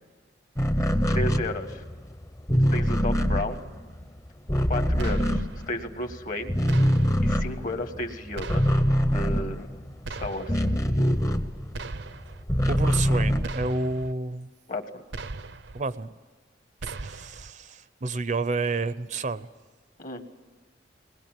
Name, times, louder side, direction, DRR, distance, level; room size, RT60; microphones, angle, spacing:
sound 1, 0.6-6.1 6.4-11.9 12.2-14.1, equal, 15° left, 0.8 m, -24 dB
voice 1, 1.1-1.8 2.7-3.6 4.7-6.6 7.2-8.7 9.1-9.7 10.2-10.6 14.7-15.0 20.0-20.2, left 1 dB, 45° left, 7 dB, 1.7 m, -33 dB
sound 2, 5.0-5.7 6.7-7.4 8.4-9.1 10.0-10.7 11.7-12.4 13.4-14.1 15.1-15.8 16.8-17.5, right 3 dB, 85° right, 0.9 m, -38 dB
voice 2, 12.7-14.5 15.7-16.1 16.8-19.5, right 3 dB, 45° right, 14 dB, 0.6 m, -30 dB
21.0 x 20.0 x 9.1 m, 1.4 s
head